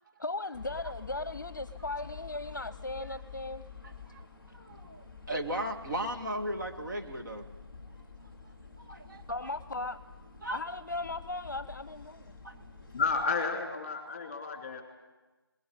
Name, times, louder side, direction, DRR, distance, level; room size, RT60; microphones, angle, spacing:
voice 1, 0.2-3.6 9.3-10.0 10.5-12.3, left 2 dB, 50° left, 15 dB, 0.8 m, -37 dB
sound 1, 0.5-13.2, left 5 dB, ahead, 2.7 m, -49 dB
voice 2, 3.8-4.3 4.5-7.4 8.8-9.5 10.4-10.6 12.4-12.7, right 1 dB, 50° right, 3 dB, 2.0 m, -37 dB
voice 3, 12.9-14.8, left 4 dB, 20° left, 3 dB, 2.9 m, -31 dB
19.5 x 17.0 x 9.7 m, 1.2 s
figure-of-eight pair, 160°, 13 cm